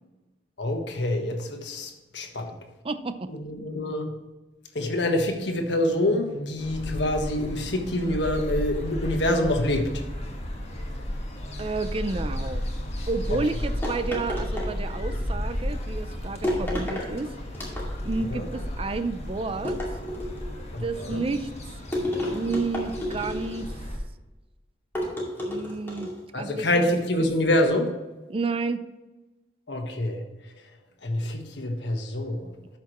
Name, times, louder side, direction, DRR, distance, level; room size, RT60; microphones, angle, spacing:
voice 1, 0.6-2.6 3.3-4.1 4.7-9.9 13.3-13.4 18.3-18.5 20.7-21.2 26.3-27.9 29.7-30.2 31.0-32.5, left 1 dB, 75° left, 3 dB, 1.4 m, -26 dB
voice 2, 2.8-3.3 11.6-12.6 13.1-17.3 18.0-19.8 20.8-21.5 22.3-23.7 25.5-26.8 28.3-28.8, right 3 dB, 30° right, 11 dB, 0.5 m, -30 dB
sound 1, 6.6-24.0, left 1 dB, 35° left, 1.5 m, -33 dB
sound 2, 13.8-15.2 16.4-17.1 17.5-18.2 19.7-20.6 21.9-23.7 24.9-26.2, left 1 dB, 15° left, 2.3 m, -31 dB
12.5 x 5.9 x 3.1 m, 1.1 s
head